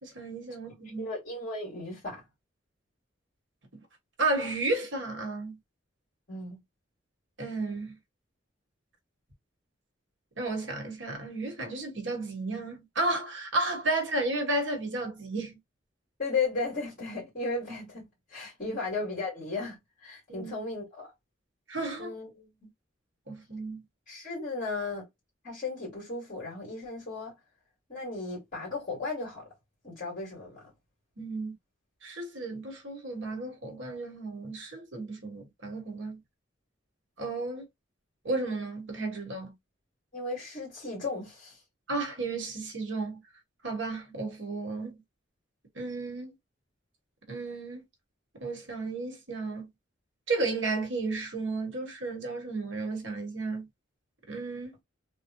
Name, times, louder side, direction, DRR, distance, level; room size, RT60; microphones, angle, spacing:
voice 1, 0.0-1.1 3.7-3.8 4.2-5.6 7.4-8.0 10.4-15.6 18.7-18.8 20.3-20.5 21.7-22.1 23.3-23.8 31.2-31.5 32.0-36.2 37.2-37.7 38.2-39.5 41.9-43.2 43.6-45.0 45.7-46.4 47.3-47.8 48.4-49.7 50.3-53.7 54.3-54.8, right 2 dB, 65° right, 1.2 m, -33 dB
voice 2, 1.0-2.2 6.3-6.6 16.2-21.1 22.0-22.5 24.1-25.1 25.4-27.3 27.9-29.4 29.8-30.6 40.1-41.6, left 3 dB, 40° left, 2.0 m, -35 dB
3.6 x 2.2 x 2.9 m
head